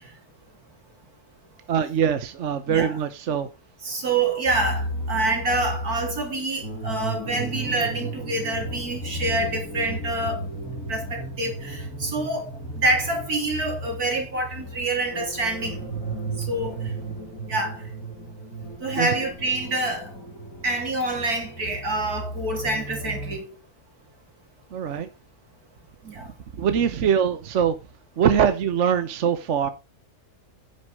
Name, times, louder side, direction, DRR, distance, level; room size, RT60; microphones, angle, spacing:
voice 1, 1.7-3.5 19.0-19.1 24.7-25.1 26.6-27.8 28.2-29.7, right 8 dB, 55° right, 1.1 m, -22 dB
voice 2, 2.7-3.0 3.8-10.4 10.9-12.5 12.8-15.8 16.5-16.9 17.5-17.8 18.8-20.1 20.6-23.5 26.0-26.3, right 2 dB, 75° right, 3.9 m, -27 dB
sound 1, 4.4-23.4, right 1 dB, 65° left, 4.4 m, -34 dB
10.0 x 6.6 x 5.1 m
omnidirectional pair, 1.6 m